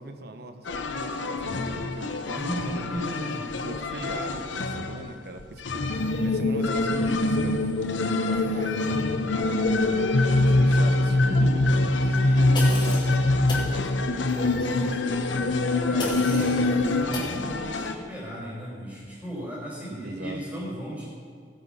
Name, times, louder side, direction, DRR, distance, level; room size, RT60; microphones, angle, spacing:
voice 1, 0.0-3.0 3.6-7.7 8.1-9.7 10.3-13.3 13.6-15.5 16.0-16.5 19.9-20.6, right 2 dB, 60° right, 7 dB, 1.0 m, -39 dB
sound 1, 0.6-17.9, left 3 dB, 90° left, 0.9 m, -32 dB
voice 2, 2.3-3.5 6.8-7.2 12.2-12.6 15.9-21.0, equal, 10° right, -6 dB, 4.2 m, -35 dB
sound 2, 5.8-17.1, left 2 dB, 65° left, 0.7 m, -23 dB
sound 3, 12.5-13.1 13.5-13.7 16.0-16.6 17.1-17.3, left 3 dB, 25° left, 3.5 m, -34 dB
17.5 x 8.1 x 5.6 m, 2.1 s
head